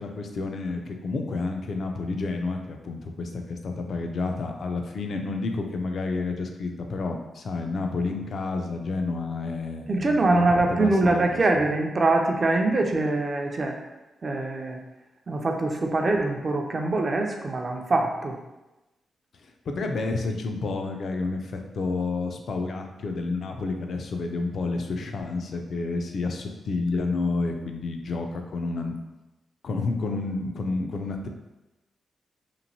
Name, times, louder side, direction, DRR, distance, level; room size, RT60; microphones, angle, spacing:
voice 1, 0.0-11.2 19.7-28.9 29.6-31.3, left 3 dB, 65° left, 4 dB, 0.3 m, -30 dB
voice 2, 9.9-13.8 14.2-14.8 15.3-18.4, right 2 dB, 40° right, 2 dB, 0.4 m, -24 dB
2.9 x 2.5 x 2.6 m, 1.0 s
cardioid pair, 100°, 0 cm